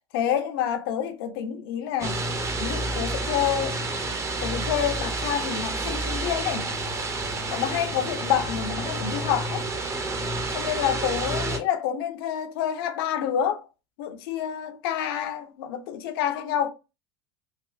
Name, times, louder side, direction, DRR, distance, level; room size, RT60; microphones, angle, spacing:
voice 1, 0.1-2.2 2.6-3.8 4.4-6.7 7.5-9.6 10.5-13.6 14.0-16.7, left 9 dB, 70° left, 0.6 m, -28 dB
sound 1, 2.0-11.6, right 2 dB, 25° right, 0.7 m, -29 dB
3.4 x 2.1 x 2.4 m
hypercardioid pair, 90°, 13 cm